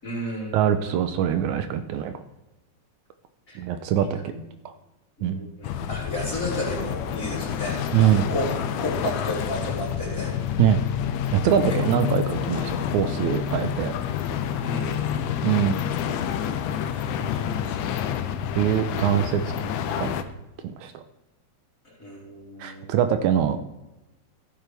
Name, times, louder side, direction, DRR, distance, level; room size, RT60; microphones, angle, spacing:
voice 1, 0.0-0.9 3.5-3.6 4.0-4.4 5.2-8.5 8.8-10.3 14.6-15.2 16.8-18.0 21.8-22.9, left 1 dB, 25° left, -6 dB, 4.8 m, -33 dB
voice 2, 0.5-2.1 3.6-4.1 4.7-4.8 5.2-5.4 7.9-8.3 10.6-10.8 11.3-13.9 15.4-15.8 18.6-19.4 20.0-20.2 20.6-21.0 22.6-23.8, right 10 dB, 80° right, 9 dB, 2.0 m, -23 dB
sound 1, 5.6-20.2, left 9 dB, 80° left, 2.2 m, -28 dB
16.0 x 9.1 x 3.3 m, 1.0 s
omnidirectional pair, 3.4 m